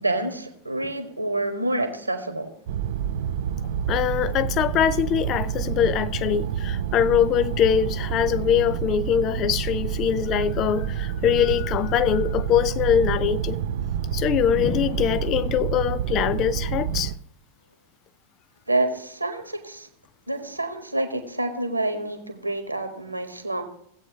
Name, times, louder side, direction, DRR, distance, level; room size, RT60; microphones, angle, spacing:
voice 1, 0.0-2.5 18.7-19.9 20.3-23.6, right 2 dB, 85° right, 1.5 m, -27 dB
sound 1, 2.7-17.2, right 9 dB, 55° right, 0.5 m, -28 dB
voice 2, 3.9-13.6 14.1-17.1, left 9 dB, 35° left, 0.5 m, -23 dB
16.5 x 8.3 x 2.9 m
figure-of-eight pair, 90°, 0 cm